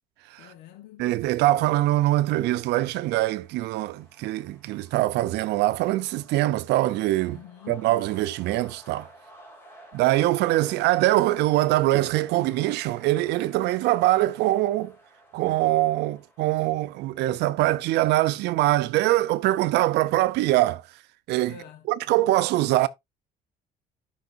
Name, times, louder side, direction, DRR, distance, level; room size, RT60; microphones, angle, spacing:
voice 1, 0.4-1.1 7.3-7.9 21.5-21.9, left 10 dB, 90° left, 1.1 m, -46 dB
voice 2, 1.0-7.4 7.7-9.1 9.9-14.9 15.3-20.8 21.3-21.5 21.9-22.9, right 16 dB, 85° right, 0.6 m, -23 dB
sound 1, 2.8-19.1, right 1 dB, 15° left, 2.8 m, -53 dB
12.0 x 5.5 x 2.6 m
cardioid pair, 110°, 17 cm